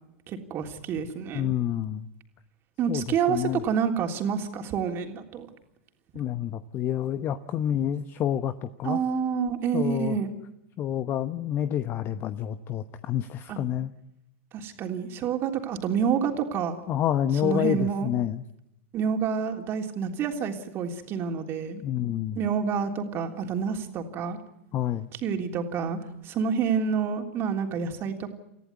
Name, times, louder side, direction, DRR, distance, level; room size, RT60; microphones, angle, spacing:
voice 1, 0.3-1.5 2.8-5.5 8.8-10.3 13.5-13.6 14.5-16.8 17.4-18.1 18.9-21.8 22.3-24.4 25.2-28.3, right 7 dB, 35° right, 4 dB, 3.5 m, -28 dB
voice 2, 1.3-2.1 2.9-3.6 6.1-9.0 9.7-10.2 10.8-13.9 16.9-18.4 21.8-22.4 24.7-25.1, left 10 dB, 30° left, 12 dB, 1.0 m, -28 dB
29.5 x 15.0 x 9.6 m, 0.87 s
hypercardioid pair, 105°, 7 cm